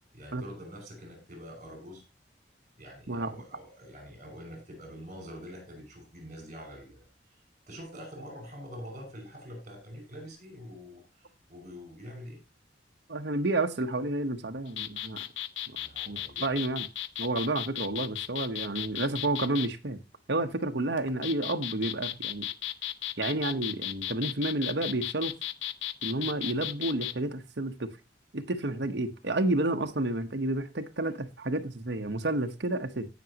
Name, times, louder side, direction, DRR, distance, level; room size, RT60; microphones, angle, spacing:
voice 1, 0.1-2.0 2.8-7.1 7.3-7.4 7.7-11.2 11.5-12.4 15.7-16.5, equal, 40° right, 5.7 m, -45 dB
voice 2, 13.1-15.2 16.1-16.9 17.2-20.0 20.3-22.5 23.2-25.3 26.0-27.9 28.3-33.1, right 2 dB, 65° right, 1.1 m, -30 dB
sound 1, 14.7-19.7 21.0-27.1, left 12 dB, 80° left, 0.6 m, -35 dB
17.5 x 6.1 x 2.9 m
head